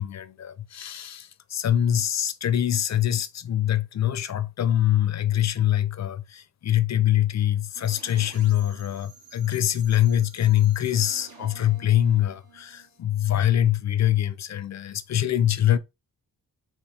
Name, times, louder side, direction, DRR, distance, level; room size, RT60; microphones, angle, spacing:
voice 1, 0.0-15.8, left 11 dB, 50° left, 0.4 m, -24 dB
sound 1, 7.7-13.5, right 5 dB, 75° right, 1.5 m, -50 dB
4.4 x 3.0 x 3.2 m
wide cardioid pair, 140°, 36 cm